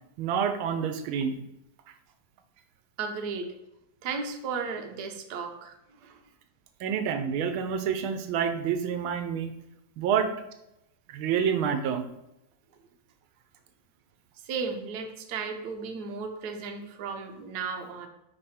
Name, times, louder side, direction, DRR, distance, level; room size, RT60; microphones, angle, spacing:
voice 1, 0.2-1.4 6.8-9.5 10.0-10.3 11.1-12.0, right 7 dB, 85° right, 8 dB, 1.5 m, -28 dB
voice 2, 3.0-3.5 4.0-6.2 14.4-18.1, right 5 dB, 60° right, 4 dB, 1.2 m, -35 dB
5.5 x 4.7 x 4.2 m, 0.86 s
omnidirectional pair, 2.2 m